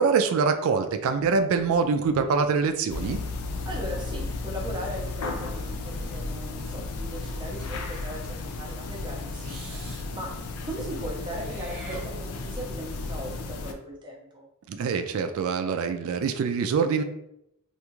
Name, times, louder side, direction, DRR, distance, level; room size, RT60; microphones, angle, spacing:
voice 1, 0.0-3.2 14.7-17.0, right 5 dB, 65° right, 8 dB, 0.3 m, -24 dB
sound 1, 2.9-13.7, left 3 dB, 80° left, 0.4 m, -34 dB
voice 2, 3.6-10.3 10.6-14.4, equal, 20° right, -2 dB, 0.6 m, -38 dB
Meow / Hiss, 7.5-8.2 9.4-10.1 11.4-12.6, right 1 dB, 45° right, 0.8 m, -44 dB
2.5 x 2.3 x 3.0 m, 0.80 s
head